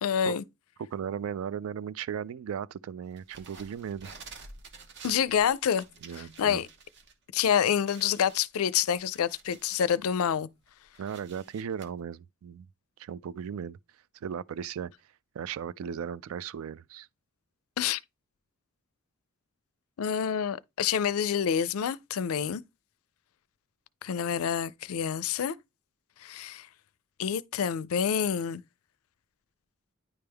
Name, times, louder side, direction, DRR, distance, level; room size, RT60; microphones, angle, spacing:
voice 1, 0.0-0.4 5.0-5.8 6.4-6.7 7.3-10.5 17.8-18.0 20.0-22.6 24.0-25.6 26.2-26.7 27.2-28.6, left 8 dB, 80° left, 0.4 m, -27 dB
voice 2, 0.8-4.1 6.0-6.6 11.0-12.7 13.0-13.8 14.1-14.9 15.3-17.1, right 8 dB, 75° right, 0.3 m, -36 dB
sound 1, 3.2-7.1 7.5-7.6 7.8-10.0 10.5-11.9, right 4 dB, 55° right, 0.9 m, -50 dB
9.7 x 3.4 x 3.4 m
head